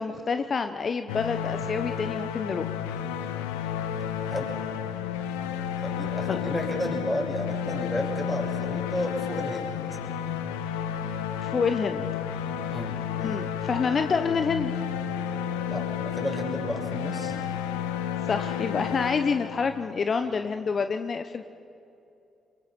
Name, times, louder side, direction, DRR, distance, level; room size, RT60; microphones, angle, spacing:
voice 1, 0.0-2.7 6.3-6.4 11.4-12.1 13.2-14.7 18.2-21.4, left 5 dB, 50° left, 8 dB, 0.9 m, -27 dB
sound 1, 1.1-20.0, left 9 dB, 85° left, 0.8 m, -31 dB
voice 2, 5.8-9.7 12.7-13.0 15.7-17.3, equal, 10° left, 0 dB, 6.3 m, -32 dB
23.0 x 22.5 x 6.1 m, 2.7 s
hypercardioid pair, 45°, 0 cm